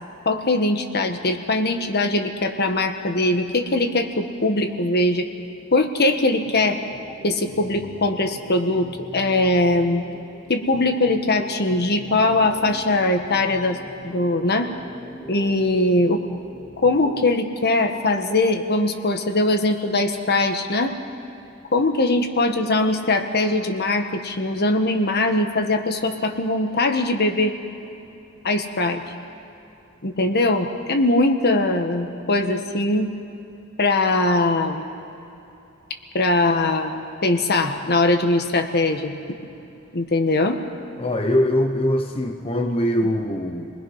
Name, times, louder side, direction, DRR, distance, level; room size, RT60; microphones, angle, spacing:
voice 1, 0.2-5.3 5.7-6.8 7.2-10.0 10.5-13.8 14.0-14.7 15.3-16.2 16.8-20.9 21.7-27.5 28.4-29.0 30.0-33.1 33.8-34.8 36.1-39.1 39.9-40.6, left 2 dB, 50° left, 5 dB, 1.5 m, -21 dB
sound 1, 6.4-17.5, equal, ahead, 1.6 m, -41 dB
voice 2, 41.0-43.7, left 1 dB, 25° left, 2 dB, 1.0 m, -22 dB
29.5 x 20.5 x 5.7 m, 2.8 s
head